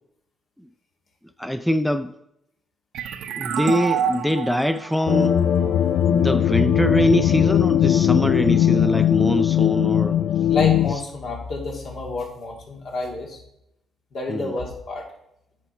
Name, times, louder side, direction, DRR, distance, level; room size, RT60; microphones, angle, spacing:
voice 1, 1.4-2.1 3.4-5.4 6.1-10.2 14.3-14.5, equal, ahead, 0.4 m, -23 dB
sound 1, 2.9-6.4, right 8 dB, 80° right, 0.7 m, -28 dB
sound 2, 5.1-10.9, left 10 dB, 80° left, 0.3 m, -19 dB
voice 2, 10.5-13.4 14.1-15.1, left 2 dB, 60° left, 2.4 m, -29 dB
8.4 x 4.6 x 5.6 m
cardioid pair, 90°, 0 cm